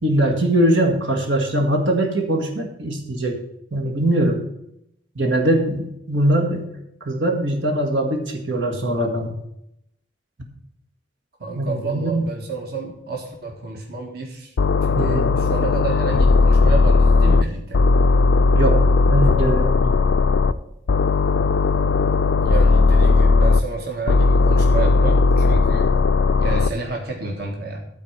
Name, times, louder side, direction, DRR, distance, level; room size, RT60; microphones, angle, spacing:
voice 1, 0.0-3.4 3.7-4.4 5.2-6.7 7.0-9.3 11.6-12.3 14.9-15.4 18.5-20.0, right 1 dB, 75° right, 1 dB, 1.8 m, -21 dB
voice 2, 11.4-14.5 14.8-17.8 22.4-25.9 26.4-27.8, right 3 dB, 55° right, 1 dB, 1.6 m, -30 dB
sound 1, 14.6-17.4 17.7-20.5 20.9-23.6 24.1-26.7, left 3 dB, 75° left, 0.5 m, -16 dB
12.5 x 4.4 x 8.1 m, 0.80 s
head